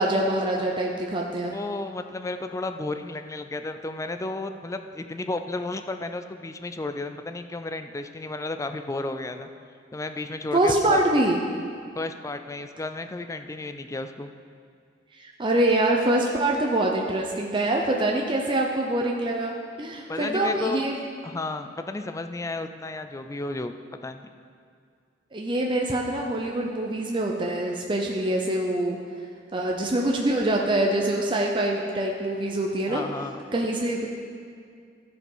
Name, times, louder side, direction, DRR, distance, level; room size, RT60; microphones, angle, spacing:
voice 1, 0.0-1.5 10.5-11.4 15.2-21.0 25.3-29.0 29.5-33.0 33.5-34.1, right 1 dB, 25° right, 0 dB, 0.6 m, -24 dB
voice 2, 1.4-9.5 9.9-11.0 11.9-14.3 20.1-20.8 21.2-23.7 24.0-24.3 32.9-33.4, left 2 dB, 15° left, 8 dB, 0.4 m, -33 dB
14.0 x 5.0 x 5.4 m, 2.2 s
head